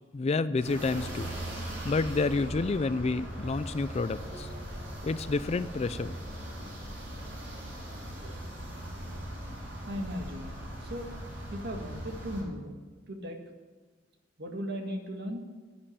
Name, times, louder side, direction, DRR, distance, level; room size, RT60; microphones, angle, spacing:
voice 1, 0.1-1.3 1.8-4.5 5.0-6.2, left 3 dB, 35° left, 15 dB, 0.4 m, -29 dB
sound 1, 0.6-12.4, equal, 90° right, 4.7 m, -40 dB
voice 2, 9.9-10.5 10.8-12.8 13.1-13.4 14.4-15.4, equal, 60° right, 3 dB, 1.9 m, -37 dB
10.5 x 9.0 x 8.6 m, 1.4 s
head